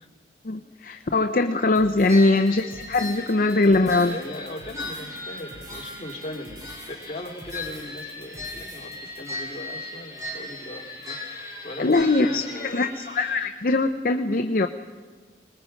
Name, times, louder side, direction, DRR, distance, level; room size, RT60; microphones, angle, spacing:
voice 1, 0.4-4.2 11.8-14.7, left 2 dB, 50° left, 6 dB, 0.7 m, -21 dB
sound 1, 1.8-9.2, right 1 dB, 70° right, 4.3 m, -47 dB
voice 2, 2.0-2.3 3.6-13.0, left 1 dB, 35° left, -1 dB, 2.5 m, -39 dB
sound 2, 2.1-13.5, left 2 dB, 20° right, 4.1 m, -38 dB
26.5 x 20.0 x 5.3 m, 1.5 s
head